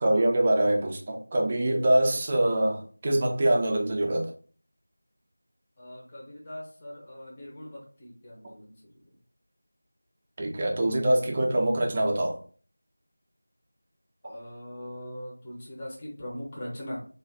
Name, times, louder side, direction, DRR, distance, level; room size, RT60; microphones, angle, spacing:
voice 1, 0.0-4.3 10.4-12.4, right 1 dB, 20° right, 1 dB, 0.4 m, -24 dB
voice 2, 5.8-8.8 14.2-17.0, equal, 15° left, -5 dB, 0.7 m, -40 dB
2.4 x 2.2 x 3.3 m, 0.42 s
figure-of-eight pair, 170°, 0 cm